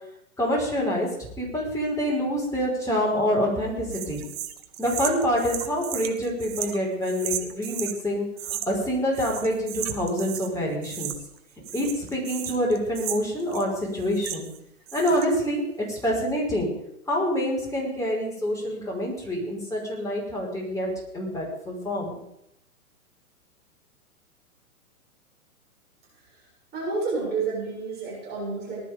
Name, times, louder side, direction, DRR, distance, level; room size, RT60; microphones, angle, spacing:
voice 1, 0.4-1.1 1.4-4.3 4.8-11.1 11.7-14.5 14.9-16.7 17.1-22.2, equal, 5° left, -3 dB, 5.4 m, -26 dB
sound 1, 3.9-8.0 8.4-8.9 9.1-10.5 10.8-11.4 11.6-14.6 14.9-15.4, right 11 dB, 45° right, 1.6 m, -35 dB
voice 2, 26.1-26.5 26.7-28.8, right 4 dB, 20° right, -5 dB, 7.3 m, -30 dB
19.0 x 12.5 x 5.3 m, 0.79 s
figure-of-eight pair, 115°, 44 cm